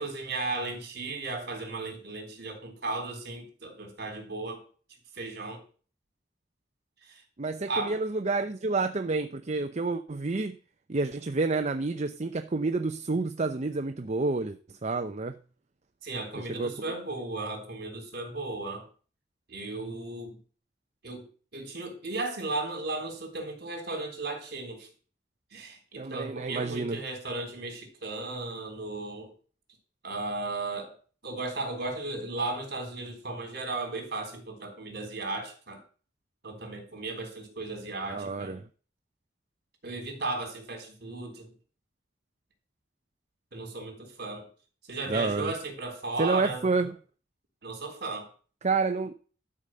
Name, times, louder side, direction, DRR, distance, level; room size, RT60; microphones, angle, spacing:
voice 1, 0.0-4.6 5.1-5.6 7.0-7.2 7.7-8.0 16.0-18.8 19.5-20.4 21.0-21.2 21.5-24.9 25.5-29.3 30.0-30.9 31.2-35.8 36.4-38.6 39.8-41.5 43.5-44.5 44.9-46.6 47.6-48.3, right 2 dB, 55° right, 4 dB, 3.6 m, -35 dB
voice 2, 7.4-10.6 10.9-15.4 16.4-16.9 26.0-27.0 38.1-38.6 45.1-45.5 46.2-46.9 48.6-49.1, right 3 dB, 40° right, 7 dB, 0.6 m, -29 dB
12.5 x 5.0 x 7.6 m, 0.39 s
head